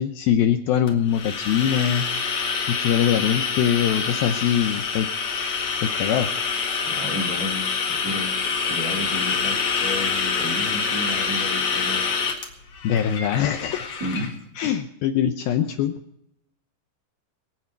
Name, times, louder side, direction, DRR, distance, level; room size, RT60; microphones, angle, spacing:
voice 1, 0.0-5.1 5.8-6.3 12.8-13.9 14.6-15.9, left 9 dB, 75° left, 7 dB, 2.3 m, -23 dB
sound 1, 0.9-14.3, left 5 dB, 50° left, 2.9 m, -26 dB
voice 2, 6.8-7.7 8.0-8.3 8.7-12.0 14.0-14.4, left 1 dB, 25° right, 1 dB, 2.5 m, -32 dB
26.0 x 8.6 x 4.5 m, 0.79 s
omnidirectional pair, 4.9 m